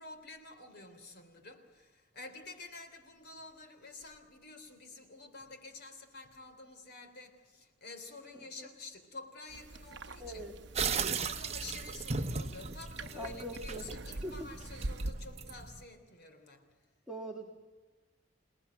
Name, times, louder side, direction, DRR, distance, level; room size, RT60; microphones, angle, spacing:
voice 1, 0.0-10.4 10.9-16.7, left 3 dB, 55° left, 6 dB, 3.4 m, -49 dB
sound 1, 9.5-15.1, right 2 dB, 65° right, 0.9 m, -44 dB
voice 2, 10.2-10.6 13.2-13.9 14.2-14.5 17.1-17.5, right 1 dB, 5° right, 0 dB, 1.7 m, -42 dB
sound 2, 10.8-15.8, right 5 dB, 35° right, 1.0 m, -37 dB
28.5 x 18.5 x 9.1 m, 1.3 s
head